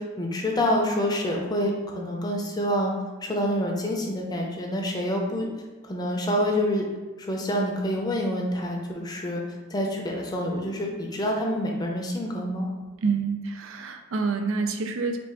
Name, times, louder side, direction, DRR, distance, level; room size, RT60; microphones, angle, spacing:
voice 1, 0.0-2.9 3.2-5.5 5.9-6.9 7.2-9.4 9.7-12.7, equal, 20° left, 0 dB, 0.6 m, -27 dB
voice 2, 13.0-15.2, right 4 dB, 75° right, 6 dB, 0.4 m, -27 dB
3.7 x 2.4 x 4.5 m, 1.3 s
head